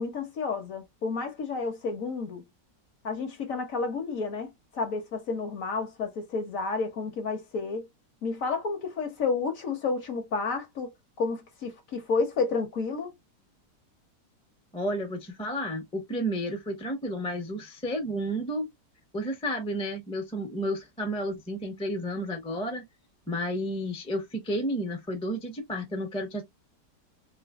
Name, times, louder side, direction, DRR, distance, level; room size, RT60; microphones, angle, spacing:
voice 1, 0.0-2.4 3.0-7.9 8.2-10.9 11.2-13.1, left 4 dB, 60° left, 1.2 m, -31 dB
voice 2, 14.7-18.7 19.1-22.8 23.3-26.4, equal, 5° left, 0.5 m, -31 dB
3.2 x 3.0 x 2.3 m
omnidirectional pair, 1.8 m